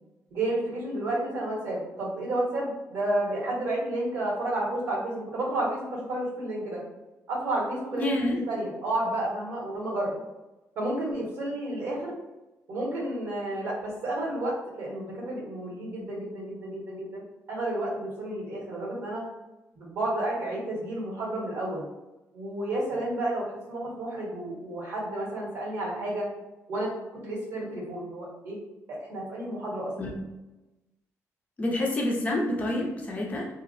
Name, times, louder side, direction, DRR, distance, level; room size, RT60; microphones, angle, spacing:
voice 1, 0.3-6.8 7.3-10.1 10.7-12.1 12.7-19.2 19.8-21.8 22.3-26.3 26.7-28.6 28.9-29.9, right 1 dB, 70° right, -6 dB, 1.3 m, -31 dB
voice 2, 8.0-8.4 30.0-30.1 31.6-33.5, left 1 dB, 25° left, -2 dB, 0.6 m, -28 dB
2.9 x 2.4 x 2.6 m, 1.0 s
cardioid pair, 150°, 6 cm